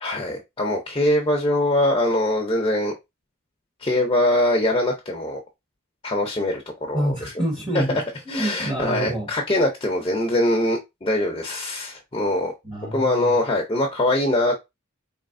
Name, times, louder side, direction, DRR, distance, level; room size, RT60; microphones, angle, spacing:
voice 1, 0.0-2.9 3.8-5.4 6.0-7.1 7.7-7.8 8.3-12.5 12.9-14.5, left 1 dB, 20° left, 0.6 m, -22 dB
voice 2, 6.9-9.3 12.6-13.3, right 1 dB, 25° right, 1.1 m, -27 dB
4.1 x 3.0 x 2.6 m
head